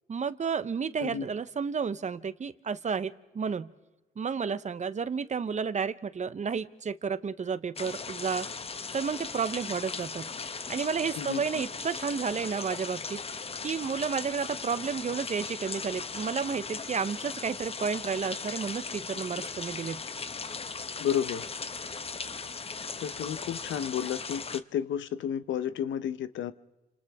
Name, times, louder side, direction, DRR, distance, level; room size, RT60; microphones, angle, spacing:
voice 1, 0.1-3.7 4.2-8.5 8.9-10.3 10.7-13.2 13.6-20.0, right 6 dB, 35° right, 13 dB, 0.9 m, -31 dB
sound 1, 7.8-24.6, left 4 dB, 30° left, 1.0 m, -38 dB
voice 2, 21.0-21.5 23.0-26.5, left 9 dB, 70° left, 14 dB, 0.9 m, -31 dB
30.0 x 26.5 x 3.6 m, 1.1 s
cardioid pair, 90°, 20 cm